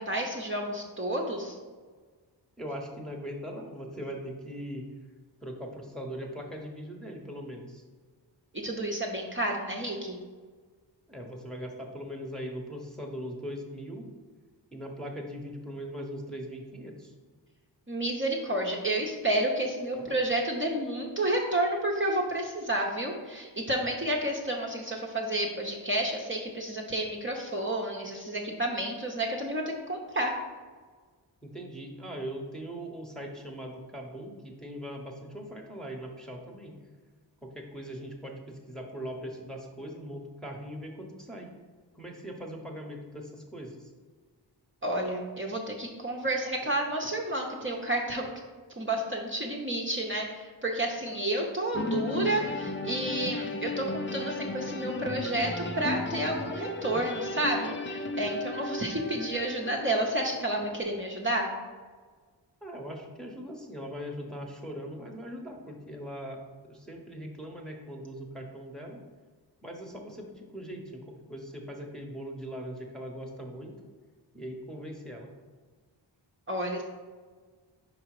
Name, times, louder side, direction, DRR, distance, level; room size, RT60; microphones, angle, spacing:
voice 1, 0.0-1.5 8.5-10.2 17.9-30.3 44.8-48.3 48.8-61.5 76.5-76.8, right 1 dB, 25° right, -1 dB, 0.9 m, -30 dB
voice 2, 2.6-4.8 5.4-7.8 11.1-14.1 14.7-17.1 19.9-20.1 31.4-36.7 37.4-41.5 41.9-43.9 46.6-46.7 62.6-69.0 69.6-73.7 74.3-75.3, equal, ahead, -1 dB, 1.1 m, -40 dB
sound 1, 51.7-60.8, left 2 dB, 25° left, 0.6 m, -35 dB
4.9 x 4.9 x 4.8 m, 1.5 s
cardioid pair, 55°, 45 cm